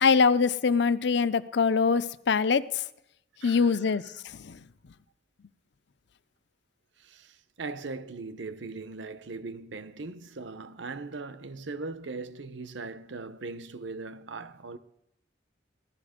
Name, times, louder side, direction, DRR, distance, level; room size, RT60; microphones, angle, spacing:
voice 1, 0.0-2.8 3.4-4.6, left 5 dB, 65° left, 0.5 m, -24 dB
voice 2, 3.4-4.0 7.0-14.8, right 3 dB, 75° right, 0.8 m, -39 dB
16.5 x 12.0 x 5.1 m
head